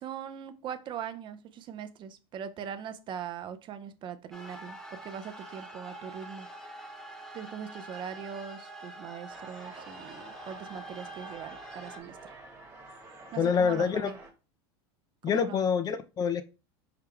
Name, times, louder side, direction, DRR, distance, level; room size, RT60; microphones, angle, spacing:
voice 1, 0.0-6.5 7.3-12.3 13.3-14.2 15.3-15.7, right 8 dB, 35° right, 0.4 m, -41 dB
sound 1, 4.3-12.0, right 2 dB, ahead, 0.8 m, -45 dB
sound 2, 9.3-14.3, right 3 dB, 20° right, 1.2 m, -49 dB
voice 2, 13.4-14.1 15.2-16.4, left 6 dB, 30° left, 0.3 m, -26 dB
4.7 x 2.2 x 3.4 m
supercardioid pair, 110°, 14 cm